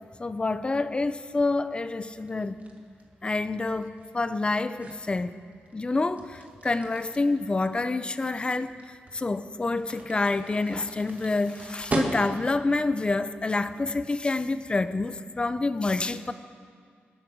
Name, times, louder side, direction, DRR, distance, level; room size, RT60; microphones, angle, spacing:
voice 1, 0.2-2.6 3.2-5.3 5.7-16.3, left 3 dB, 25° left, 12 dB, 0.7 m, -28 dB
sound 1, 2.2-12.7, right 2 dB, 35° right, 2.0 m, -38 dB
25.0 x 8.8 x 6.3 m, 2.1 s
cardioid pair, 95°, 4 cm